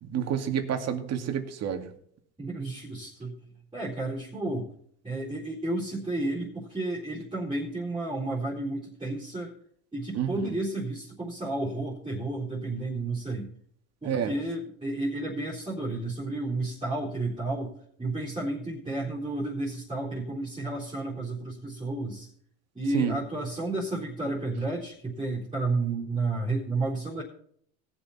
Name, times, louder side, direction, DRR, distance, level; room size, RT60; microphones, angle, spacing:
voice 1, 0.0-1.9 10.1-10.5 14.0-14.3 22.9-23.1, right 8 dB, 45° right, 6 dB, 2.3 m, -29 dB
voice 2, 2.4-3.3 3.7-4.7 5.0-9.5 9.9-13.5 14.0-17.7 18.0-22.3 22.7-27.2, right 2 dB, 10° right, -4 dB, 3.8 m, -32 dB
19.0 x 7.3 x 4.2 m, 0.62 s
supercardioid pair, 110°, 35 cm